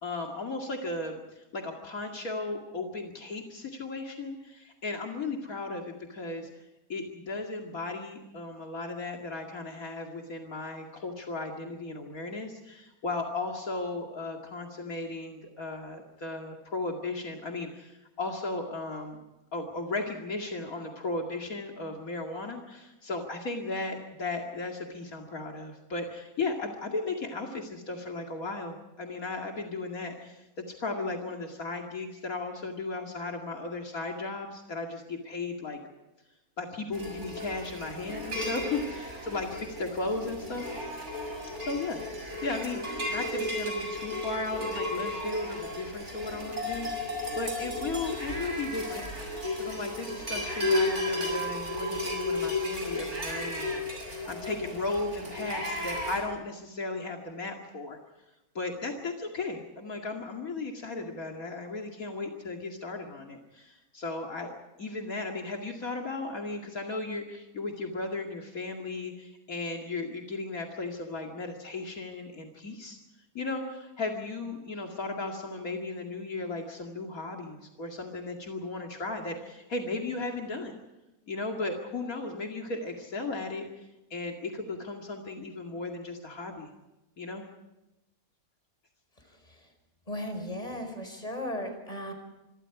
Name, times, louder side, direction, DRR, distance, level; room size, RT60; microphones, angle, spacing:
voice 1, 0.0-6.6 6.9-19.2 19.5-35.8 36.6-40.7 41.6-42.0 42.4-49.0 49.6-53.7 54.3-58.0 58.5-64.5 64.8-73.0 73.3-80.7 81.3-83.9 84.1-86.7 87.2-87.4, left 3 dB, 70° left, 1 dB, 2.8 m, -36 dB
sound 1, 36.9-56.2, left 1 dB, 50° right, 7.1 m, -34 dB
voice 2, 90.1-92.1, left 1 dB, 25° left, 6 dB, 5.2 m, -36 dB
27.0 x 24.0 x 4.9 m, 1.0 s
omnidirectional pair, 1.5 m